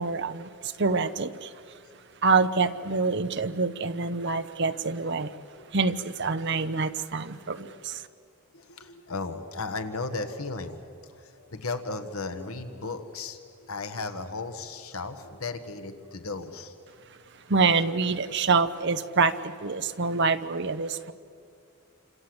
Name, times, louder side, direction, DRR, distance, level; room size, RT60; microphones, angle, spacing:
voice 1, 0.0-1.5 2.2-5.3 5.7-8.0 17.5-21.1, right 4 dB, 50° right, 10 dB, 0.9 m, -26 dB
voice 2, 7.3-7.7 8.5-16.7, left 3 dB, 75° left, 7 dB, 1.6 m, -36 dB
28.5 x 26.0 x 8.0 m, 2.4 s
head